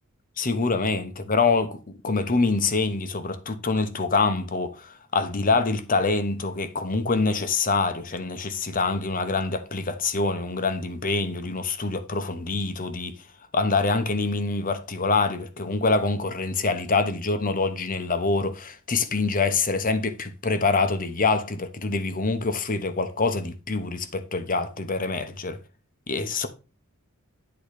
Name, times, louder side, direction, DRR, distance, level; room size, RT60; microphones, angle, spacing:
voice 1, 0.4-13.3 13.5-25.6 26.1-26.5, left 3 dB, 40° left, 1.0 m, -25 dB
10.5 x 4.0 x 4.9 m
head